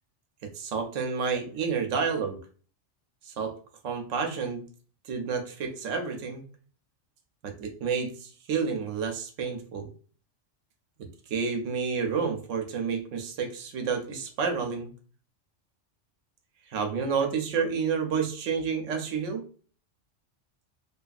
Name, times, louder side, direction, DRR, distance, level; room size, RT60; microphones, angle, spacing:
voice 1, 0.4-2.4 3.2-3.5 3.8-4.6 5.0-6.4 7.4-9.9 11.3-14.9 16.7-19.4, right 5 dB, 80° right, 5 dB, 0.9 m, -30 dB
2.7 x 2.4 x 2.3 m, 0.42 s
omnidirectional pair, 1.3 m